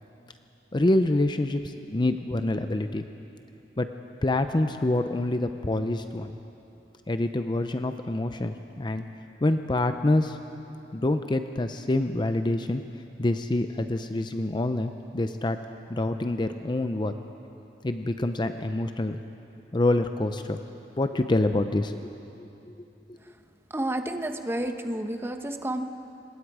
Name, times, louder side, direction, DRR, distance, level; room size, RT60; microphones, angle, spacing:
voice 1, 0.7-3.0 3.8-3.9 4.2-6.4 7.1-9.0 9.4-10.4 10.9-12.8 13.2-15.6 15.9-17.1 17.8-19.2 19.7-20.6 21.0-22.0 22.4-22.7, left 2 dB, 25° left, 8 dB, 0.6 m, -26 dB
voice 2, 23.7-25.9, right 1 dB, 15° right, 6 dB, 1.0 m, -30 dB
26.5 x 21.0 x 4.9 m, 2.8 s
head